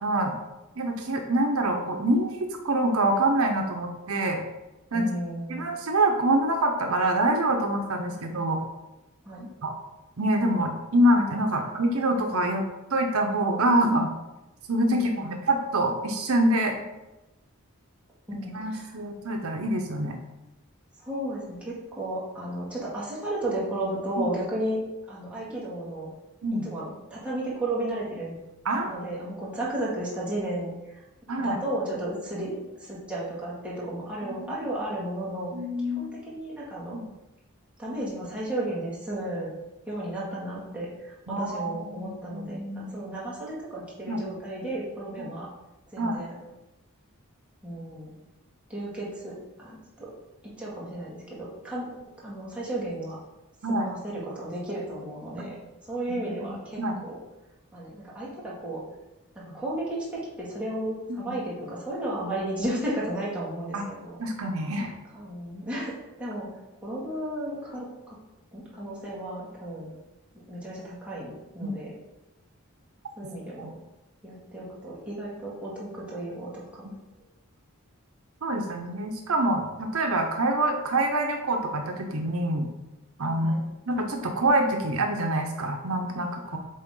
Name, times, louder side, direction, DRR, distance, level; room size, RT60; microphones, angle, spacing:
voice 1, 0.0-0.3 0.8-4.4 4.9-5.1 5.5-8.6 9.6-9.7 10.2-12.6 12.9-14.1 14.7-16.8 18.5-20.2 26.4-26.7 28.7-29.0 31.3-31.6 35.5-36.2 36.9-37.1 41.3-42.9 44.1-44.2 46.0-46.2 53.6-53.9 56.1-56.2 56.5-57.0 61.1-61.3 63.7-63.8 64.2-64.9 71.6-71.7 73.6-73.7 78.4-82.7 83.2-83.5 83.9-86.6, right 1 dB, 75° right, 3 dB, 0.8 m, -26 dB
voice 2, 4.9-5.7 8.1-8.3 9.2-9.5 11.6-11.7 14.9-15.3 18.3-19.0 21.0-24.8 25.1-26.1 26.5-28.4 28.9-31.0 31.4-35.5 35.8-37.0 37.8-39.5 39.9-45.5 45.9-46.4 47.6-48.1 48.7-50.1 50.4-51.9 52.2-53.2 53.7-55.6 55.9-57.2 57.7-58.8 59.3-64.2 65.1-66.5 66.8-68.2 68.5-69.9 70.5-71.9 73.2-73.7 74.2-76.9 83.3-83.6 86.5-86.6, right 1 dB, 5° right, -8 dB, 2.0 m, -34 dB
8.6 x 3.5 x 3.8 m, 1.0 s
head